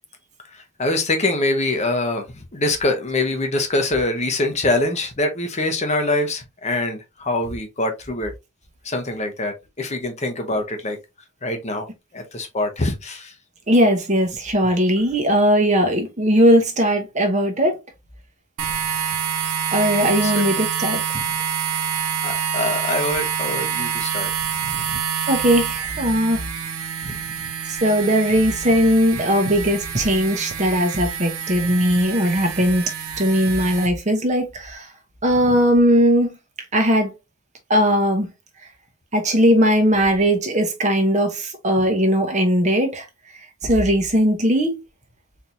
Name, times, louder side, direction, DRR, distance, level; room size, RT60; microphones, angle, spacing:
voice 1, 0.5-8.3 8.8-11.0 11.4-11.9 12.1-13.3 20.2-20.4 21.1-21.2 22.2-24.3 24.7-25.3 27.0-27.2 35.5-35.6, left 2 dB, 30° left, 0.8 m, -24 dB
voice 2, 13.7-17.8 19.7-21.0 21.7-21.8 25.3-26.4 27.7-34.9 35.2-36.4 36.7-37.1 37.7-38.3 39.1-43.1 43.6-44.8, equal, 30° right, 0.9 m, -19 dB
sound 1, 18.6-33.9, right 8 dB, 80° right, 0.8 m, -27 dB
4.2 x 3.3 x 2.6 m
head